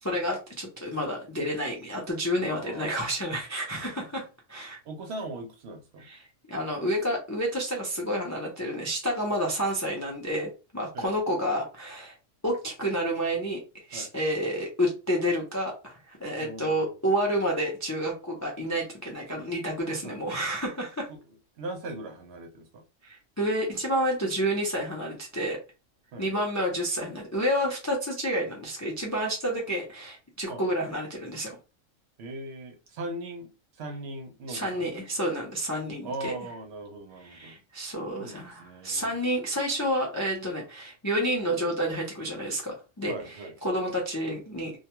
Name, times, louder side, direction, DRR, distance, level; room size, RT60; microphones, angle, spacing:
voice 1, 0.0-4.2 4.5-4.8 6.0-12.2 12.4-21.1 23.0-25.6 26.2-31.6 34.5-36.6 37.2-44.7, equal, 30° left, 0.3 m, -30 dB
voice 2, 2.5-3.0 3.8-3.9 4.8-6.1 10.9-11.1 13.9-14.1 16.4-16.9 20.0-20.2 21.1-21.2 21.6-22.8 26.1-26.3 30.5-30.6 32.2-33.5 33.8-34.9 36.0-37.5 38.2-39.1 43.1-43.5, right 2 dB, 65° right, 0.7 m, -39 dB
2.3 x 2.2 x 2.8 m
omnidirectional pair, 1.3 m